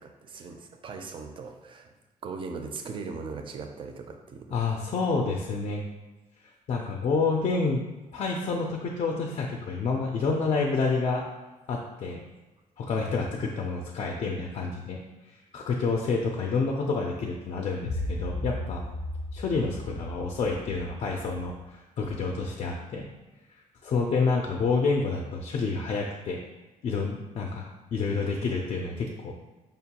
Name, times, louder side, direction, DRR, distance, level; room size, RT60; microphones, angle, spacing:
voice 1, 0.0-1.9 2.2-4.5, right 4 dB, 35° right, 5 dB, 0.4 m, -39 dB
voice 2, 4.5-5.8 6.7-7.8 8.1-11.2 11.7-12.2 12.8-15.0 15.3-18.8 19.3-23.1 23.8-26.4 26.8-29.4, left 4 dB, 45° left, 0 dB, 0.4 m, -28 dB
5.1 x 2.2 x 2.8 m, 1.2 s
cardioid pair, 140°, 15 cm